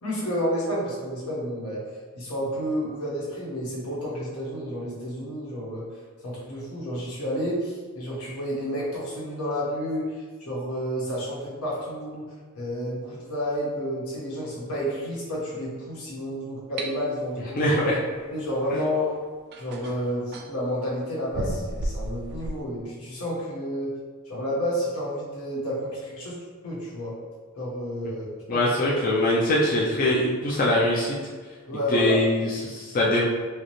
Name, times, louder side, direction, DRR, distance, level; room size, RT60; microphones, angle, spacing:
voice 1, 0.0-1.8 2.1-5.9 6.2-10.1 10.4-12.3 12.5-17.6 18.3-19.1 19.6-23.9 24.3-27.2 27.6-28.2 28.5-28.6 31.7-32.2, equal, 85° left, -6 dB, 1.2 m, -30 dB
sound 1, 16.8-16.9 18.8-18.9 19.5-20.5 21.3-22.6, right 1 dB, 50° right, 0.3 m, -32 dB
voice 2, 17.6-18.0 18.7-18.8 28.5-31.2 31.9-33.2, left 1 dB, 40° left, -5 dB, 0.5 m, -23 dB
4.9 x 2.1 x 3.0 m, 1.4 s
head